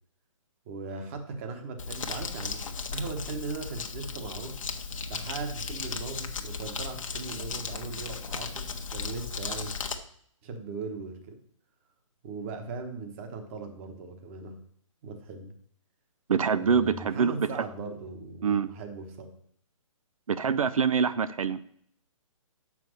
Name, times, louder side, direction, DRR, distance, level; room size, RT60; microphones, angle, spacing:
voice 1, 0.7-2.6 2.9-4.6 5.1-9.7 10.4-11.4 12.2-14.5 15.0-15.5 16.6-18.5 18.7-19.3, right 4 dB, 25° right, 5 dB, 1.1 m, -39 dB
Crumpling crinkling, 1.8-9.9, left 5 dB, 70° left, 1.2 m, -36 dB
voice 2, 16.3-17.5 18.4-18.7 20.3-21.6, right 6 dB, 85° right, 14 dB, 0.6 m, -25 dB
6.8 x 6.0 x 6.5 m, 0.63 s
hypercardioid pair, 160°, 17 cm